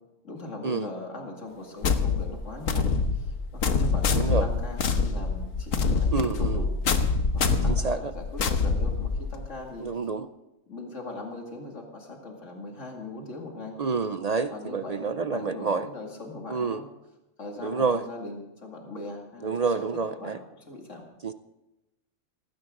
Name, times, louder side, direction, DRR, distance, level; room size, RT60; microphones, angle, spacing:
voice 1, 0.2-9.9 10.7-13.8 14.5-16.8 17.4-19.5 20.2-21.0, left 2 dB, 70° left, 1 dB, 2.7 m, -40 dB
sound 1, 1.8-9.5, left 4 dB, 85° left, 1.5 m, -25 dB
voice 2, 4.1-4.5 6.1-6.6 7.6-8.1 9.8-10.3 13.8-15.9 16.5-16.8 17.6-18.0 19.4-20.4 21.2-21.3, right 4 dB, 50° right, 11 dB, 0.4 m, -28 dB
18.0 x 16.0 x 3.8 m, 0.96 s
omnidirectional pair, 1.3 m